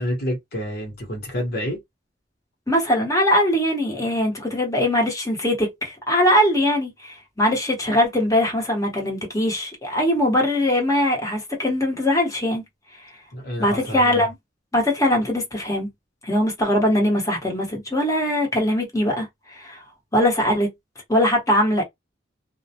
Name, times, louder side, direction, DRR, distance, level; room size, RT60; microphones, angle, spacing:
voice 1, 0.0-1.8 13.3-14.3, equal, 55° left, 1.0 m, -28 dB
voice 2, 2.7-12.6 13.6-14.3 14.7-15.9 16.2-19.8 20.1-20.7 21.1-21.8, left 1 dB, 20° left, 1.0 m, -21 dB
2.2 x 2.1 x 2.8 m
head